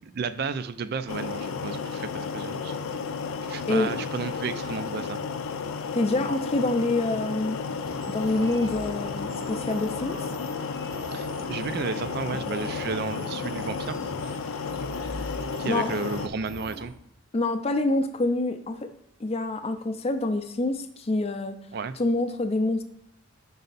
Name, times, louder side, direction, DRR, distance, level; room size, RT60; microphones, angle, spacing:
voice 1, 0.0-2.8 3.4-5.2 11.1-14.0 15.6-16.9 21.7-22.0, right 5 dB, 50° right, 12 dB, 0.4 m, -32 dB
sound 1, 1.1-16.3, left 5 dB, 85° left, 0.4 m, -33 dB
voice 2, 5.9-7.6 8.1-10.2 15.6-15.9 17.3-18.9 19.2-21.6 22.0-22.8, left 2 dB, 30° left, 8 dB, 0.4 m, -26 dB
sound 2, 7.8-16.9, right 1 dB, 85° right, 1.4 m, -42 dB
5.4 x 5.2 x 4.0 m, 0.78 s
head